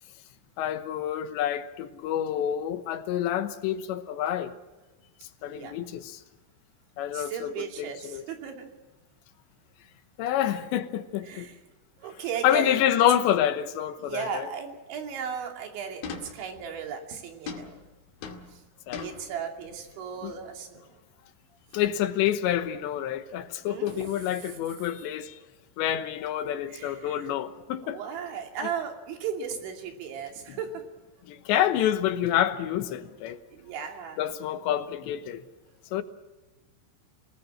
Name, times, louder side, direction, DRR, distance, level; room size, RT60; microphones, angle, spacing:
voice 1, 0.6-4.5 5.4-6.2 7.0-8.2 10.2-11.5 12.4-14.5 18.9-19.0 20.2-20.3 21.7-25.4 25.8-28.0 30.5-30.6 31.3-33.4 34.2-35.4 35.9-36.0, left 11 dB, 80° left, 3.2 m, -28 dB
voice 2, 5.4-5.7 7.1-8.7 11.3-11.6 12.0-12.8 14.0-17.8 18.5-18.6 19.0-20.9 23.6-24.6 26.7-27.3 27.8-30.8 33.5-34.2, right 7 dB, 80° right, 5.1 m, -36 dB
sound 1, 16.0-16.9 17.5-20.0 20.2-20.6 21.7-22.3 22.5-22.9 23.8-24.6, left 5 dB, 55° left, 3.4 m, -43 dB
27.5 x 19.0 x 6.2 m
omnidirectional pair, 5.3 m